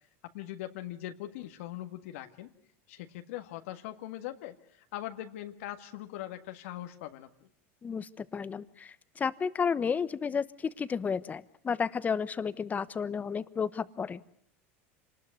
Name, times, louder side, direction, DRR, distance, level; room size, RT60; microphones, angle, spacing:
voice 1, 0.2-2.5 2.9-7.5, left 13 dB, 80° left, 6 dB, 1.7 m, -41 dB
voice 2, 7.8-14.3, left 6 dB, 20° left, 15 dB, 1.1 m, -32 dB
27.0 x 20.0 x 9.6 m, 0.68 s
supercardioid pair, 115°, 7 cm